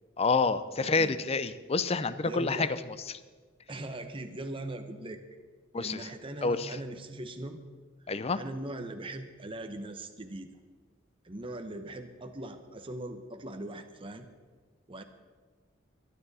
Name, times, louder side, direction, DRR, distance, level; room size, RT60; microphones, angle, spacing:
voice 1, 0.2-2.8 5.7-6.1 6.4-6.8 8.1-8.4, left 4 dB, 30° left, 14 dB, 0.6 m, -28 dB
voice 2, 0.8-1.1 2.2-2.7 3.7-5.2 5.7-7.6 8.4-10.5 11.2-14.3 14.9-15.0, right 1 dB, 25° right, 6 dB, 0.9 m, -40 dB
23.0 x 10.5 x 4.2 m, 1.4 s
head